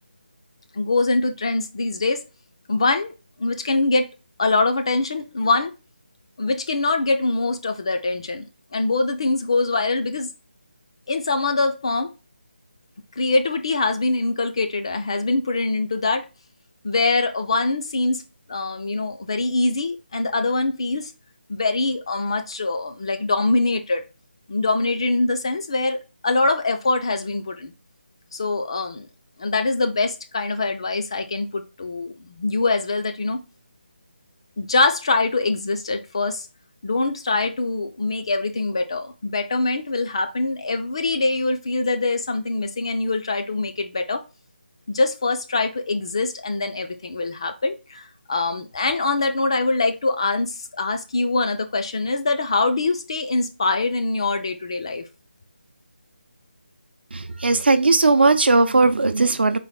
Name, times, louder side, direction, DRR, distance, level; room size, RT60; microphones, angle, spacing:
voice 1, 0.7-2.2 2.7-3.1 3.4-4.1 4.4-5.7 6.4-8.4 8.7-10.3 11.1-12.1 13.2-16.3 16.8-18.2 18.5-21.1 21.5-24.0 24.5-26.0 26.2-27.7 28.3-29.1 29.4-33.4 34.6-36.5 36.8-44.2 44.9-55.0, left 3 dB, 30° left, 0.4 m, -23 dB
voice 2, 57.1-59.6, right 3 dB, 70° right, 0.6 m, -18 dB
4.0 x 2.4 x 3.3 m
figure-of-eight pair, 170°, 6 cm